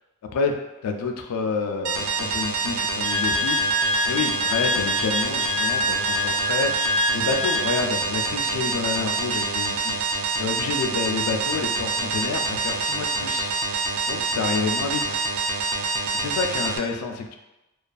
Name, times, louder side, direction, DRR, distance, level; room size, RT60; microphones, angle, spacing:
voice 1, 0.8-3.7 4.1-9.9 10.4-13.5 14.1-15.2 16.1-17.4, left 4 dB, 80° left, 4 dB, 0.3 m, -28 dB
sound 1, 1.8-16.8, right 4 dB, 65° right, 0.3 m, -26 dB
Wind instrument woodwind instrument, 3.0-7.8, left 2 dB, 5° left, 0.4 m, -26 dB
2.4 x 2.2 x 2.3 m, 0.98 s
head